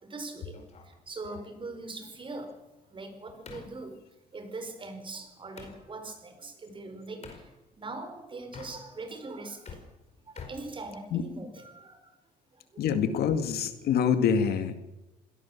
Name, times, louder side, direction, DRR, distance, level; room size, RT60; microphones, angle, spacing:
voice 1, 0.0-0.6 0.8-2.6 2.9-4.0 4.3-9.8 10.3-12.1 12.7-12.8, right 3 dB, 30° right, 7 dB, 4.9 m, -41 dB
sound 1, 0.5-5.8 7.2-7.5 8.4-9.2 9.5-11.4, left 5 dB, 40° left, 5.1 m, -49 dB
voice 2, 12.8-14.8, left 7 dB, 65° left, 9 dB, 2.1 m, -26 dB
26.0 x 17.5 x 7.3 m, 1.0 s
cardioid pair, 110°, 17 cm